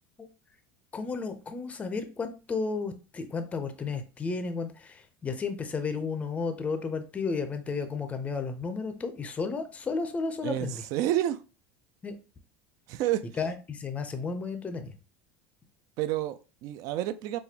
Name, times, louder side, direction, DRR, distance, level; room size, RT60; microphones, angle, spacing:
voice 1, 0.9-10.8 12.0-12.2 13.4-14.9, left 4 dB, 20° left, 0.5 m, -33 dB
voice 2, 10.4-11.4 12.9-13.3 16.0-17.4, right 13 dB, 55° right, 0.3 m, -29 dB
4.1 x 2.3 x 2.7 m
supercardioid pair, 125°, 7 cm